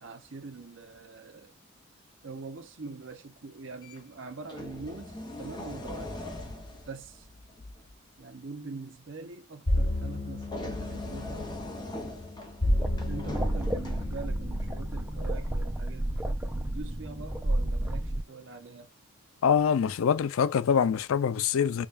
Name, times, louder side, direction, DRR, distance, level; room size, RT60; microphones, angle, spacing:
voice 1, 0.0-1.5 2.2-6.2 6.9-7.3 8.2-11.5 13.1-18.9, right 4 dB, 65° right, 0.8 m, -43 dB
sound 1, 3.8-4.0 4.5-8.0 10.4-14.4 15.4-15.6, left 1 dB, 20° left, 0.7 m, -41 dB
sound 2, 9.7-15.3, left 1 dB, 40° left, 1.4 m, -32 dB
sound 3, 12.6-18.2, right 1 dB, 10° right, 0.4 m, -31 dB
voice 2, 19.4-21.9, left 7 dB, 85° left, 0.4 m, -24 dB
5.0 x 2.3 x 2.5 m
head